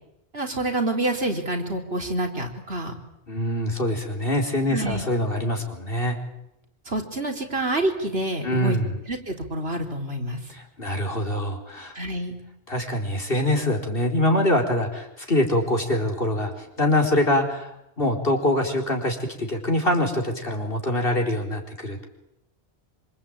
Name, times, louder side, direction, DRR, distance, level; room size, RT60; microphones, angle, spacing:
voice 1, 0.3-2.9 4.7-5.1 6.9-8.8 9.1-10.4 11.9-12.4, right 1 dB, 70° right, 4 dB, 4.3 m, -27 dB
voice 2, 3.3-6.2 8.4-8.9 10.5-12.0 12.7-22.0, left 1 dB, 60° left, 3 dB, 4.6 m, -24 dB
26.0 x 26.0 x 8.8 m, 0.83 s
omnidirectional pair, 1.1 m